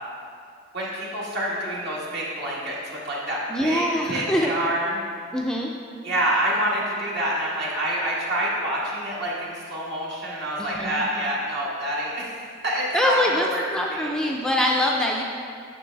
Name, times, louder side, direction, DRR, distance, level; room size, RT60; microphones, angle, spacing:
voice 1, 0.7-5.0 6.0-14.1, right 1 dB, 55° right, -5 dB, 1.7 m, -27 dB
voice 2, 3.5-4.5 5.3-5.7 10.6-11.0 12.9-15.2, left 1 dB, 5° left, -2 dB, 0.4 m, -24 dB
9.2 x 6.4 x 3.4 m, 2.1 s
head